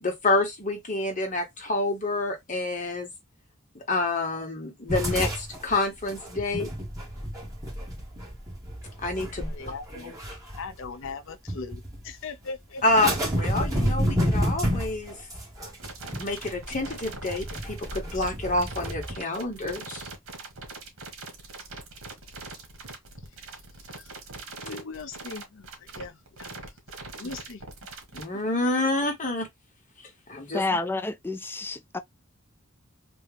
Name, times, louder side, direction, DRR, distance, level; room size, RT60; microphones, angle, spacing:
voice 1, 0.0-3.1 3.7-6.7 9.0-9.5 12.8-15.3 16.1-20.1 27.2-27.3 28.1-29.5 30.0-30.6, left 2 dB, 40° left, 1.5 m, -28 dB
sound 1, 4.9-11.1 11.5-12.1 12.9-19.1, equal, 15° right, 1.8 m, -30 dB
voice 2, 9.4-10.1 10.6-12.8 23.9-24.1 24.5-26.6 27.1-27.6 30.7-30.8, left 4 dB, 65° left, 0.7 m, -39 dB
sound 2, 15.8-28.2, right 3 dB, 80° right, 1.5 m, -42 dB
voice 3, 30.5-32.0, left 3 dB, 10° left, 0.4 m, -29 dB
3.6 x 2.8 x 3.3 m
head